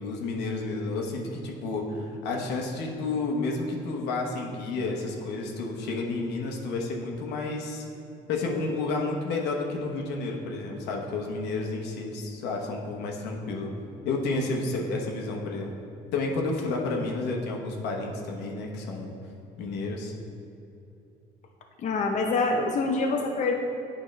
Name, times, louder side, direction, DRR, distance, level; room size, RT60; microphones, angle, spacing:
voice 1, 0.0-7.8 8.3-13.7 14.0-15.7 16.1-19.1 19.6-20.1, left 3 dB, 85° left, 0 dB, 1.0 m, -31 dB
voice 2, 21.8-23.5, left 3 dB, 45° left, 2 dB, 0.6 m, -25 dB
8.9 x 4.9 x 3.2 m, 2.8 s
cardioid pair, 110°, 17 cm